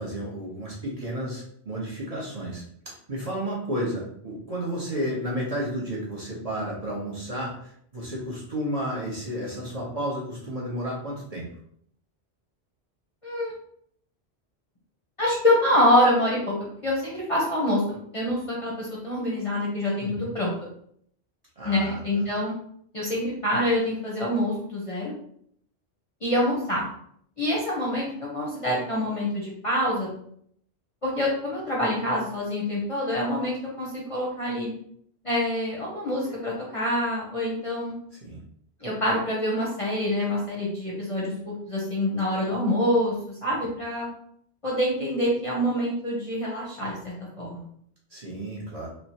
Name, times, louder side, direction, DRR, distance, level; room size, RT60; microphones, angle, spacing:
voice 1, 0.0-11.5 20.0-20.3 21.6-22.2 38.1-38.4 48.1-48.9, right 1 dB, 40° right, -5 dB, 0.8 m, -32 dB
voice 2, 15.2-16.5 16.8-20.5 21.6-22.5 22.9-25.1 26.2-26.8 27.4-30.1 31.0-34.7 35.2-38.0 38.8-43.1 43.4-44.1 44.6-47.7, left 1 dB, 35° left, -5 dB, 0.6 m, -26 dB
3.1 x 2.1 x 2.7 m, 0.65 s
omnidirectional pair, 1.1 m